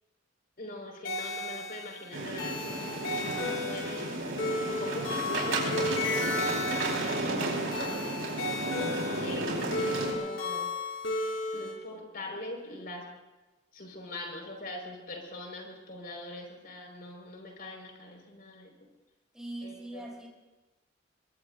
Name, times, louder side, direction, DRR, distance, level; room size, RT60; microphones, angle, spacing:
voice 1, 0.6-4.1 4.7-8.2 9.2-10.7 11.5-13.1 13.7-18.7 19.6-20.0, left 1 dB, 50° left, 1 dB, 5.0 m, -42 dB
sound 1, 1.0-11.7, left 2 dB, 80° left, 5.6 m, -34 dB
sound 2, 2.1-10.1, right 2 dB, 85° right, 4.5 m, -33 dB
voice 2, 19.3-20.3, right 1 dB, 5° right, -1 dB, 3.9 m, -41 dB
24.0 x 23.0 x 2.6 m, 1.1 s
head